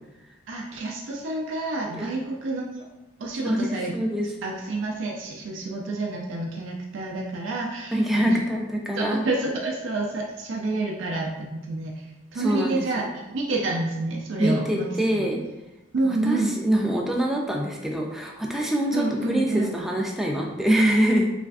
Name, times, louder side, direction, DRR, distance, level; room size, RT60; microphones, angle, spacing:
voice 1, 0.5-2.9 3.2-3.9 4.2-8.4 9.0-15.3 15.9-16.5 18.9-19.7, right 2 dB, 75° right, -1 dB, 0.4 m, -29 dB
voice 2, 3.9-4.3 7.9-9.2 12.3-13.1 14.4-15.4 16.0-21.3, equal, ahead, -1 dB, 0.3 m, -24 dB
3.2 x 2.4 x 2.3 m, 1.0 s
head